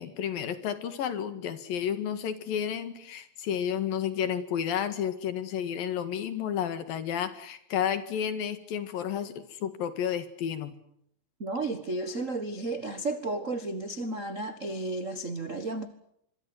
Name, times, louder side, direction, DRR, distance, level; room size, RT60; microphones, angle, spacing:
voice 1, 0.0-10.7, left 9 dB, 75° left, 11 dB, 3.7 m, -31 dB
voice 2, 11.4-15.9, right 2 dB, 85° right, 10 dB, 0.7 m, -33 dB
25.5 x 22.5 x 8.0 m, 0.74 s
omnidirectional pair, 4.2 m